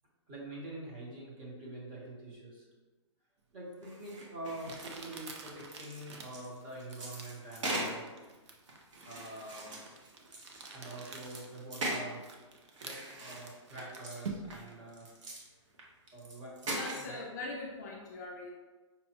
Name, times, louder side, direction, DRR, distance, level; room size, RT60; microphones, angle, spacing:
voice 1, 0.3-2.7 3.5-8.1 9.0-9.8 10.7-12.2 12.8-15.1 16.1-17.2, right 1 dB, 25° right, -4 dB, 0.9 m, -45 dB
Crumpling crinkling, 3.7-3.8 4.6-14.7, right 4 dB, 65° right, 0.6 m, -48 dB
sound 1, 3.8-5.2 5.5-8.0 8.7-10.8 11.1-12.1 12.7-14.2 14.5-15.4 15.7-15.8 16.1-17.1, right 1 dB, 80° right, 1.1 m, -40 dB
voice 2, 16.7-18.5, left 3 dB, 35° left, -1 dB, 0.4 m, -41 dB
5.4 x 2.2 x 2.8 m, 1.2 s
hypercardioid pair, 165°, 16 cm